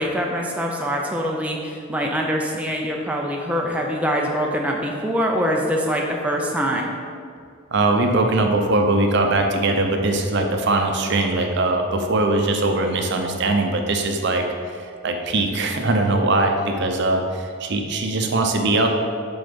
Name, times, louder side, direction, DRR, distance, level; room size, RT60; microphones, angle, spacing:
voice 1, 0.0-6.9, equal, 5° right, -1 dB, 0.5 m, -24 dB
voice 2, 7.7-18.9, right 2 dB, 55° right, 4 dB, 0.7 m, -21 dB
7.7 x 3.9 x 5.3 m, 2.3 s
head